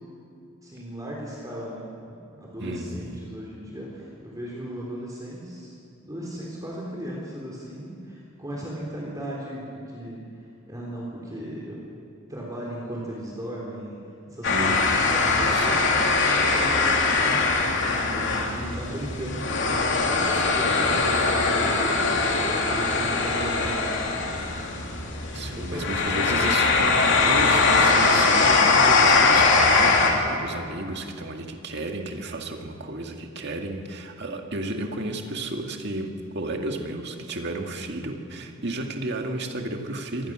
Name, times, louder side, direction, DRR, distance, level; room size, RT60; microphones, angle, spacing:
voice 1, 0.6-1.9 2.3-5.7 6.0-11.8 12.3-13.9 14.3-22.1 22.4-24.3 25.5-26.6, right 1 dB, 15° right, -4 dB, 3.4 m, -36 dB
voice 2, 2.6-3.2 14.5-16.3 20.1-21.3 25.3-40.3, right 2 dB, 55° right, 3 dB, 2.0 m, -33 dB
sound 1, 14.4-30.1, left 3 dB, 60° left, 2.9 m, -21 dB
24.5 x 19.5 x 6.2 m, 2.5 s
head